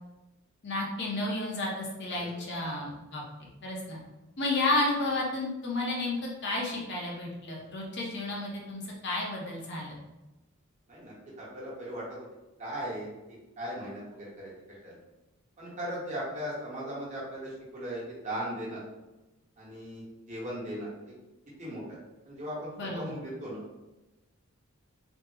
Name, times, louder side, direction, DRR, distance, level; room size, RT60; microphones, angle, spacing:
voice 1, 0.6-4.0 4.4-10.0 22.8-23.1, left 2 dB, 50° left, -2 dB, 0.6 m, -32 dB
voice 2, 2.1-2.7 10.9-12.0 12.6-13.1 13.6-14.5 14.8-14.9 15.6-18.8 19.6-20.9 21.6-21.8 22.3-23.6, equal, 30° right, -7 dB, 1.0 m, -38 dB
3.4 x 2.0 x 3.2 m, 1.1 s
head